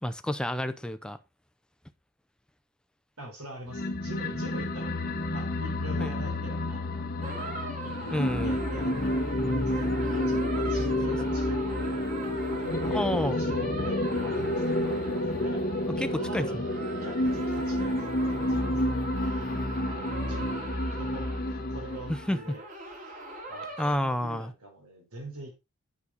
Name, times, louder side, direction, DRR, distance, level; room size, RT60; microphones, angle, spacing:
voice 1, 0.0-1.2 6.0-6.1 8.1-8.6 11.3-11.4 12.9-13.4 16.0-16.6 19.5-19.6 22.1-22.4 23.8-24.5, left 1 dB, 5° left, 0.5 m, -30 dB
voice 2, 3.2-7.3 7.8-10.0 10.3-12.1 12.5-14.9 15.4-15.7 15.9-16.6 17.0-18.9 19.3-19.6 19.9-22.6 23.0-23.2 23.5-25.5, right 1 dB, 85° right, 4.0 m, -43 dB
sound 1, 3.7-22.3, left 1 dB, 40° left, 1.2 m, -30 dB
sound 2, 7.2-23.9, right 2 dB, 35° right, 2.6 m, -40 dB
8.5 x 6.4 x 4.0 m
head